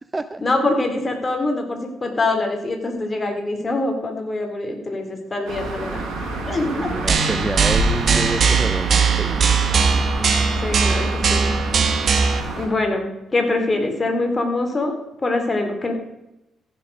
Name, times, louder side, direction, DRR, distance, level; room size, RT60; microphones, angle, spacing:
voice 1, 0.4-6.0 6.5-6.9 10.6-11.5 12.5-14.9 15.2-15.9, left 2 dB, 30° left, 4 dB, 2.5 m, -24 dB
sound 1, 5.5-12.7, right 3 dB, 75° right, 3.9 m, -28 dB
voice 2, 6.7-9.4 9.9-10.0, right 2 dB, 20° right, 12 dB, 0.5 m, -28 dB
sound 2, 7.1-12.4, right 5 dB, 50° right, 1.3 m, -19 dB
15.0 x 6.8 x 5.1 m, 0.89 s
cardioid pair, 90°, 0 cm